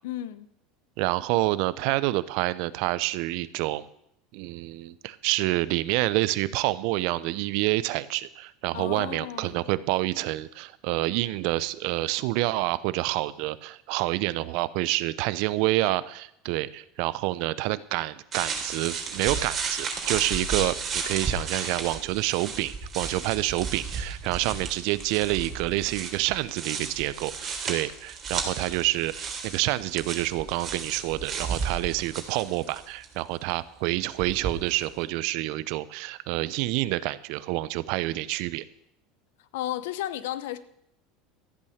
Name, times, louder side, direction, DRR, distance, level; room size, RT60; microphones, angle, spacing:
voice 1, 0.0-0.5 8.7-9.6 39.5-40.6, left 13 dB, 75° left, 0.9 m, -33 dB
voice 2, 1.0-3.9 4.3-38.6, right 18 dB, 65° right, 0.7 m, -28 dB
sound 1, 18.3-33.1 34.2-34.9, right 5 dB, 35° right, 3.5 m, -33 dB
14.0 x 8.5 x 6.7 m
hypercardioid pair, 90°, 0 cm